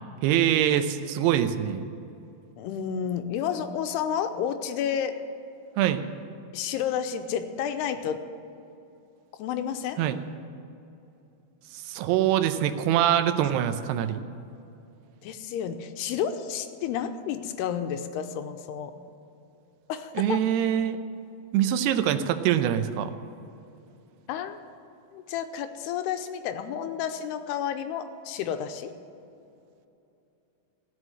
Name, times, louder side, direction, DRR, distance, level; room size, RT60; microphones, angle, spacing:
voice 1, 0.2-1.9 5.8-6.1 10.0-10.2 11.7-14.2 20.2-21.0 21.5-23.1, right 10 dB, 85° right, 10 dB, 2.7 m, -24 dB
voice 2, 2.6-5.1 6.5-8.2 9.4-10.0 15.2-18.9 19.9-20.4 24.3-24.6 25.1-28.9, left 8 dB, 90° left, 8 dB, 2.7 m, -31 dB
16.0 x 6.3 x 9.9 m, 2.7 s
omnidirectional pair, 4.7 m